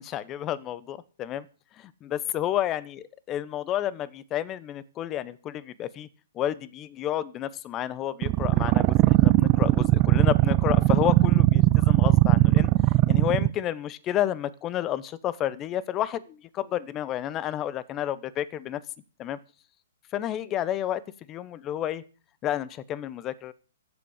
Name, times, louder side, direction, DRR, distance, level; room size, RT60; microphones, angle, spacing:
voice 1, 0.0-1.5 1.8-6.1 6.3-12.7 13.1-18.8 19.2-19.4 20.1-21.0 21.3-22.0 22.4-23.5, left 12 dB, 25° left, 19 dB, 0.9 m, -30 dB
sound 1, 8.2-13.5, right 18 dB, 30° right, 0.6 m, -19 dB
15.0 x 7.7 x 6.5 m, 0.38 s
hypercardioid pair, 130°, 0 cm